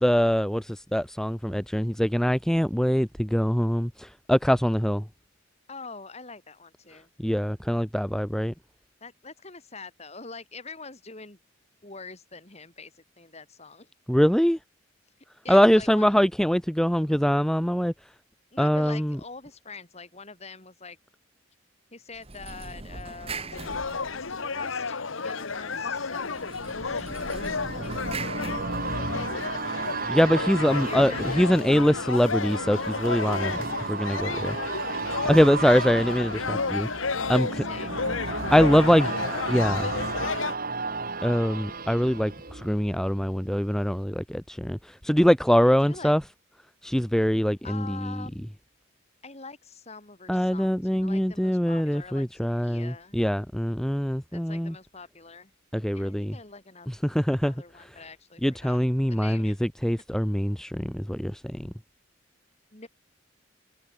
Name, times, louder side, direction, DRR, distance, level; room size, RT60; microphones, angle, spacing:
voice 1, 0.0-5.0 7.2-8.5 14.1-14.6 15.5-17.9 18.6-19.2 30.1-34.6 35.2-37.5 38.5-39.1 39.5-39.9 41.2-46.2 46.8-48.2 50.3-54.7 55.7-56.4 57.0-57.5 57.8-57.9 58.4-61.7, equal, 5° left, 0.7 m, -23 dB
voice 2, 5.7-7.1 9.0-11.4 11.8-13.9 15.4-16.1 18.5-21.0 21.9-28.0 29.1-29.9 30.8-31.5 35.2-35.4 37.3-38.0 38.7-39.2 39.5-40.4 45.7-46.1 47.6-48.5 49.2-53.2 54.3-55.5 55.9-56.9 57.3-58.8 59.1-59.6 62.7-62.9, left 4 dB, 30° left, 3.5 m, -45 dB
sound 1, 22.1-24.7 26.3-29.5, right 3 dB, 30° right, 2.0 m, -40 dB
sound 2, 23.5-40.6, left 4 dB, 75° left, 1.4 m, -32 dB
sound 3, 25.5-43.3 43.7-43.8, right 3 dB, 45° right, 2.1 m, -34 dB
head